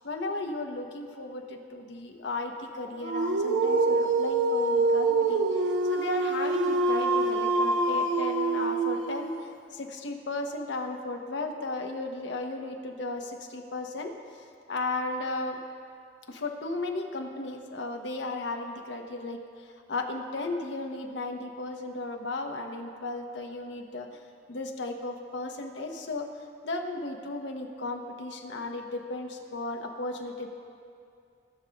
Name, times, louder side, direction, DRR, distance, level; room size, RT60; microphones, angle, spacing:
voice 1, 0.0-5.4 5.9-9.3 9.7-14.1 14.7-15.6 16.3-24.1 24.5-26.3 26.6-30.5, left 2 dB, 85° left, 3 dB, 0.9 m, -35 dB
Dog, 3.0-9.4, right 2 dB, 85° right, 0.7 m, -25 dB
18.5 x 6.2 x 2.9 m, 2.4 s
head